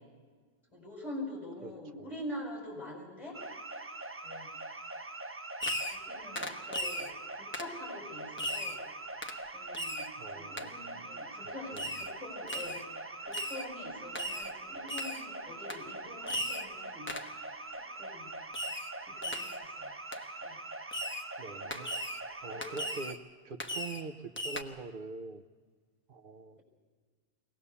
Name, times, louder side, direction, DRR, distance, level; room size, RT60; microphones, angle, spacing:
voice 1, 0.7-3.4 4.2-4.6 5.8-8.8 9.4-17.1 17.7-18.3 19.0-19.9 20.4-20.6 21.5-21.9 22.4-23.0, left 1 dB, 25° left, -2 dB, 6.5 m, -45 dB
sound 1, 3.3-23.1, right 2 dB, 20° right, 0.3 m, -43 dB
Fireworks, 5.6-6.1 6.4-7.1 7.5-7.8 8.4-8.8 9.2-9.4 9.7-10.1 10.6-10.7 11.8-12.1 12.5-12.8 13.3-13.7 14.2-14.5 14.9-15.3 15.7-15.8 16.3-16.7 17.1-17.3 18.5-18.9 19.2-19.6 20.1-20.2 20.9-21.3 21.7-22.2 22.6-23.2 23.6-24.1 24.4-24.6, equal, 10° left, 0.9 m, -37 dB
voice 2, 10.2-11.2 11.7-11.9 21.4-21.9 22.4-23.2 23.4-25.4 26.1-26.6, right 3 dB, 50° right, 9 dB, 0.9 m, -43 dB
23.0 x 18.0 x 7.0 m, 1.5 s
omnidirectional pair, 1.2 m